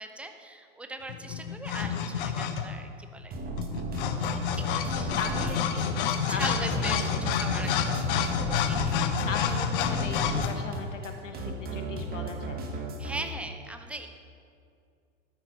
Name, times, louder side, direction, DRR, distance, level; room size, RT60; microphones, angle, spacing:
voice 1, 0.0-3.4 4.2-4.3 4.6-5.5 5.8-8.3 8.6-8.9 13.0-14.1, right 2 dB, 5° right, 6 dB, 0.7 m, -40 dB
sound 1, 1.1-2.9 3.6-10.5, left 7 dB, 45° left, 0.9 m, -29 dB
sound 2, 3.3-13.2, right 3 dB, 25° right, 1.5 m, -36 dB
voice 2, 5.2-6.0 6.3-7.2 9.2-12.8, left 4 dB, 70° left, 5 dB, 1.5 m, -37 dB
12.5 x 10.5 x 4.2 m, 2.4 s
figure-of-eight pair, 95°, 39 cm